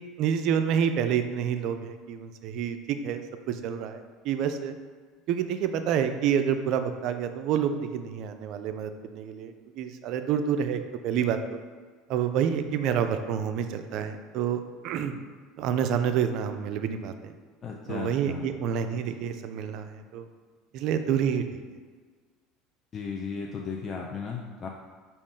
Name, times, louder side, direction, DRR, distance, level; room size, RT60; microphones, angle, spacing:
voice 1, 0.2-3.2 3.5-4.7 5.3-11.6 12.1-15.1 15.6-17.3 17.9-20.3 20.7-21.4, right 8 dB, 60° right, 8 dB, 0.3 m, -28 dB
voice 2, 17.6-18.5 22.9-24.7, left 5 dB, 35° left, 0 dB, 0.4 m, -35 dB
4.9 x 2.4 x 3.6 m, 1.5 s
hypercardioid pair, 75°, 0 cm